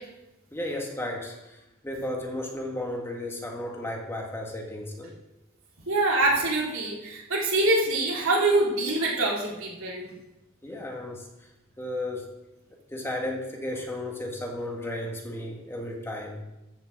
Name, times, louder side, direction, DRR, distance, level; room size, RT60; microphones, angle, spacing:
voice 1, 0.5-1.6 1.8-5.1 10.6-11.3 11.8-12.3 12.9-16.4, left 1 dB, 10° left, 0 dB, 1.8 m, -34 dB
voice 2, 5.9-10.0, right 2 dB, 80° right, -3 dB, 3.6 m, -24 dB
13.5 x 6.0 x 7.4 m, 0.95 s
head